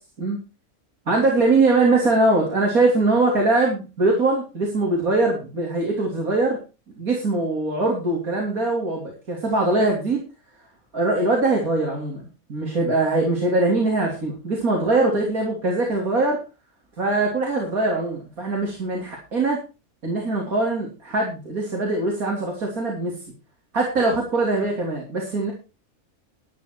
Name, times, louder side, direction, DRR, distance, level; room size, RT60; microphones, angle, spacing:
voice 1, 1.1-6.6 7.0-10.2 10.9-12.2 12.5-16.4 17.0-19.6 20.0-23.2 23.7-25.5, right 2 dB, 80° right, -1 dB, 3.6 m, -22 dB
12.5 x 10.5 x 4.6 m, 0.31 s
omnidirectional pair, 1.5 m